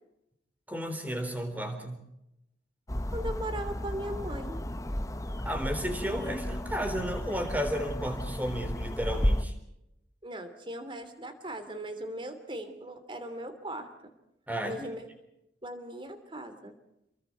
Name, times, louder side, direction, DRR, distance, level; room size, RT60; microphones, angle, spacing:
voice 1, 0.7-2.0 5.4-9.5 14.5-14.8, equal, 10° right, 6 dB, 3.9 m, -33 dB
sound 1, 2.9-9.4, equal, 20° left, 1.1 m, -33 dB
voice 2, 3.1-4.6 10.2-13.9 14.6-15.1 15.6-16.7, right 1 dB, 30° right, 9 dB, 3.1 m, -38 dB
29.0 x 23.0 x 4.7 m, 0.83 s
head